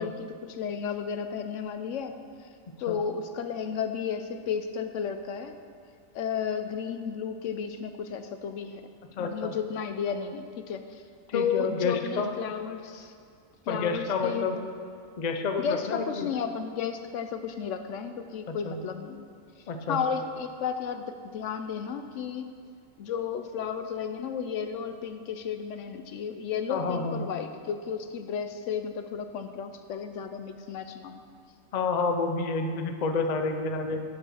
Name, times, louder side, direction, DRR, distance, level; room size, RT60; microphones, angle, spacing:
voice 1, 0.0-2.1 2.8-5.6 6.1-8.9 9.2-11.0 11.3-13.1 13.7-14.7 15.6-19.3 19.9-22.4 23.0-31.2, left 7 dB, 70° left, 8 dB, 0.9 m, -33 dB
voice 2, 9.2-9.5 11.3-12.3 13.7-14.6 15.2-16.3 18.5-18.8 19.7-20.0 26.7-27.3 31.7-34.0, left 4 dB, 45° left, 5 dB, 0.6 m, -29 dB
8.1 x 7.0 x 6.2 m, 2.2 s
omnidirectional pair, 1.4 m